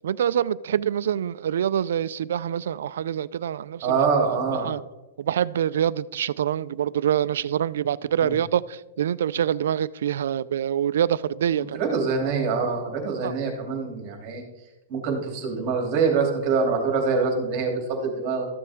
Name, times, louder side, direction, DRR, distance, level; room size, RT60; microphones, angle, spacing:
voice 1, 0.0-4.0 4.6-4.8 5.2-11.8 13.2-13.3, right 9 dB, 80° right, 18 dB, 0.3 m, -25 dB
voice 2, 3.8-4.7 8.1-8.3 11.5-14.4 14.9-18.5, right 5 dB, 35° right, 2 dB, 2.9 m, -25 dB
13.5 x 6.9 x 3.6 m, 1.1 s
hypercardioid pair, 155°, 0 cm